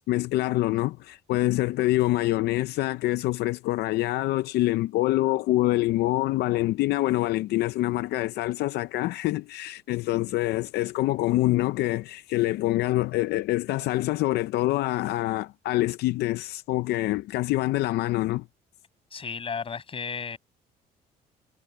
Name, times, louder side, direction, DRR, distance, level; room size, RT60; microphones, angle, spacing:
voice 1, 0.1-18.4, left 17 dB, 75° left, 0.5 m, -25 dB
voice 2, 19.1-20.4, left 6 dB, 35° left, 6.3 m, -33 dB
cardioid pair, 110°, 17 cm